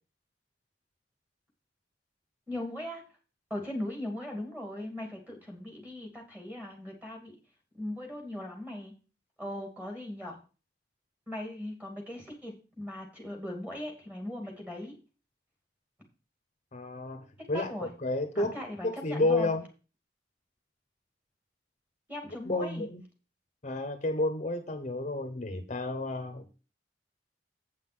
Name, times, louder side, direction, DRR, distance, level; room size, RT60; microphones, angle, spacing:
voice 1, 2.5-3.0 3.5-7.3 7.7-8.9 9.4-10.4 11.3-14.9 17.5-17.9 18.3-19.5 22.1-22.9, left 1 dB, 10° right, 2 dB, 2.4 m, -39 dB
voice 2, 16.7-17.7 18.0-18.6 18.8-19.6 22.5-23.0 23.6-26.5, left 2 dB, 40° left, 8 dB, 0.9 m, -31 dB
8.3 x 5.7 x 6.1 m, 0.34 s
head